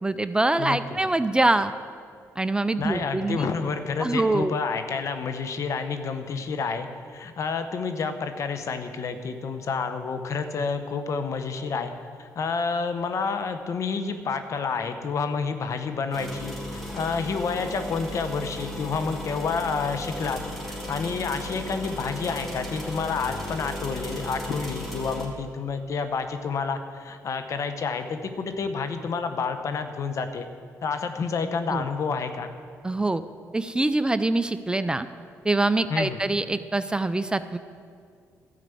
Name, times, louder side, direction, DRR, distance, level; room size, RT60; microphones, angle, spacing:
voice 1, 0.0-1.7 2.4-3.4 4.0-4.6 31.7-31.8 32.8-33.2 33.5-35.1 35.4-37.6, right 2 dB, 15° right, 12 dB, 0.4 m, -24 dB
voice 2, 0.6-1.1 2.8-11.9 12.2-30.5 30.8-32.5 35.9-36.2, left 5 dB, 55° left, 8 dB, 1.0 m, -29 dB
sound 1, 16.1-25.3, equal, 5° left, 3.0 m, -36 dB
12.5 x 5.1 x 8.3 m, 2.2 s
supercardioid pair, 70°, 6 cm